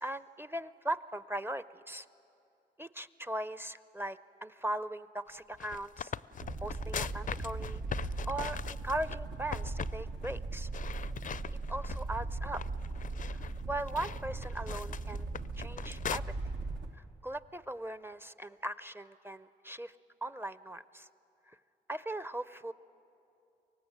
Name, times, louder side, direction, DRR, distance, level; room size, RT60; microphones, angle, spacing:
voice 1, 0.0-2.1 2.8-6.1 6.6-10.7 11.7-12.6 13.3-15.3 15.6-16.3 16.9-19.9 20.2-21.1 21.9-22.7, right 1 dB, 10° right, 14 dB, 0.5 m, -39 dB
sound 1, 5.4-9.2 9.5-10.0 10.2-10.4 10.7-12.2 12.5-16.2, left 7 dB, 50° left, 0.4 m, -40 dB
sound 2, 6.3-17.0, right 3 dB, 90° right, 1.2 m, -39 dB
24.5 x 18.0 x 7.4 m, 2.8 s
cardioid pair, 60°, 18 cm